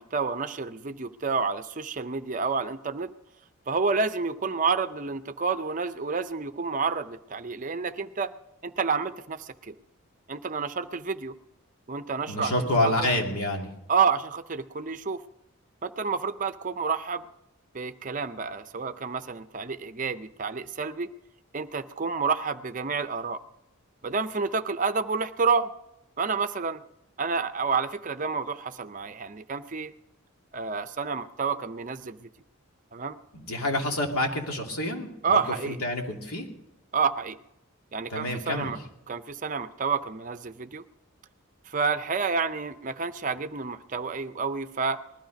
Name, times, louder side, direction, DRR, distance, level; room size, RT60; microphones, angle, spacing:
voice 1, 0.0-3.1 3.7-8.3 8.6-9.8 10.3-11.3 11.9-12.9 13.9-15.2 15.8-17.2 17.7-21.1 21.5-23.4 24.0-25.7 26.2-26.8 27.2-29.9 30.5-32.3 32.9-33.2 35.2-35.8 36.9-37.4 37.9-38.8 39.1-40.8 41.7-45.0, right 5 dB, 35° right, 11 dB, 0.6 m, -29 dB
voice 2, 12.3-13.7 33.3-35.4 35.7-36.5 38.1-38.7, left 1 dB, 80° left, 1 dB, 2.7 m, -28 dB
20.0 x 13.0 x 5.2 m, 0.89 s
head